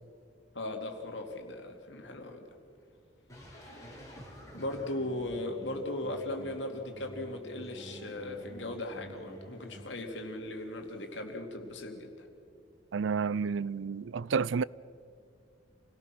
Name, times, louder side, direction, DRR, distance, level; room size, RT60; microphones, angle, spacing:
voice 1, 0.5-2.5 4.5-12.3, left 1 dB, 75° left, 2.8 m, -38 dB
sound 1, 3.3-9.8, equal, 20° left, 7.4 m, -49 dB
voice 2, 12.9-14.6, right 5 dB, 90° right, 0.4 m, -30 dB
28.0 x 18.0 x 6.1 m
head